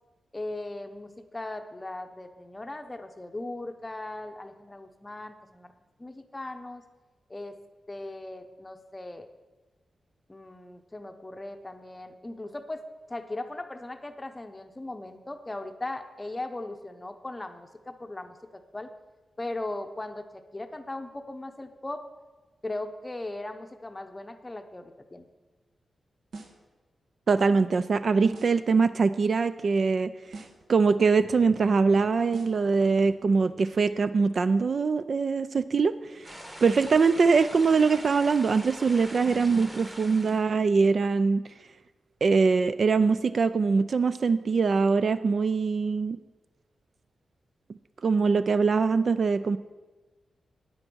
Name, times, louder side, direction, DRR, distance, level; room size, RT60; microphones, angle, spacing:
voice 1, 0.3-5.7 6.0-6.8 7.3-7.5 7.9-9.3 10.3-18.9 19.4-22.0 22.6-25.2, left 2 dB, 15° left, 8 dB, 0.7 m, -38 dB
sound 1, 26.3-26.7 28.3-28.7 30.3-30.7 32.3-32.7, right 3 dB, 75° right, 1.4 m, -44 dB
voice 2, 27.3-30.1 30.7-36.3 36.6-41.4 42.2-46.2 48.0-49.6, right 4 dB, 45° right, 13 dB, 0.3 m, -23 dB
sound 2, 36.2-40.4, equal, 15° right, 1.2 m, -43 dB
9.2 x 8.8 x 6.1 m, 1.2 s
wide cardioid pair, 150°, 0 cm